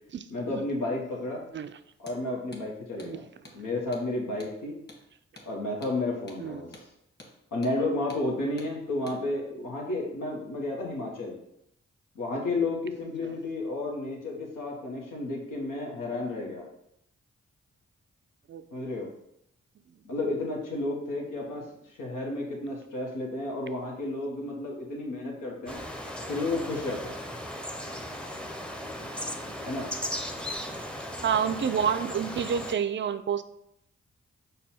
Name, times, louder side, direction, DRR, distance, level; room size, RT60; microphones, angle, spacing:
voice 1, 0.3-1.4 2.0-3.2 3.5-4.7 5.5-6.7 7.5-11.4 12.1-16.6 18.7-19.1 20.0-21.6 22.0-25.8 26.3-27.2 29.6-29.9, left 2 dB, 85° left, -1 dB, 1.1 m, -32 dB
Hammer, 2.0-2.2 2.5-2.7 3.0-3.1 3.4-3.6 3.9-4.1 4.4-4.5 4.9-5.0 5.4-5.5 5.8-6.0 6.3-6.4 6.7-6.9 7.2-7.3 7.6-7.8 8.1-8.2 8.6-8.7 9.1-9.2, left 1 dB, 35° left, 1.3 m, -49 dB
voice 2, 6.4-6.7 13.2-13.3 18.5-19.0 31.2-33.4, right 7 dB, 40° right, 11 dB, 0.4 m, -29 dB
sound 1, 25.7-32.7, equal, 5° left, 0.6 m, -37 dB
5.4 x 2.2 x 4.3 m, 0.78 s
supercardioid pair, 40°, 31 cm